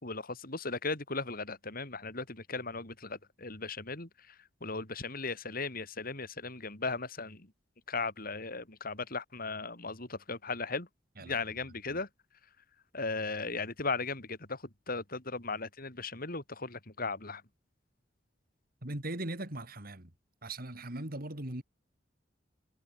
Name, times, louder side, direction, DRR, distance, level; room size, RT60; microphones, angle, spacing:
voice 1, 0.0-4.1 4.6-7.5 7.9-10.9 11.2-12.1 12.9-14.6 14.9-17.4, left 3 dB, 50° left, 4.3 m, -37 dB
voice 2, 18.8-20.1 20.4-21.6, right 1 dB, 55° right, 3.2 m, -39 dB
head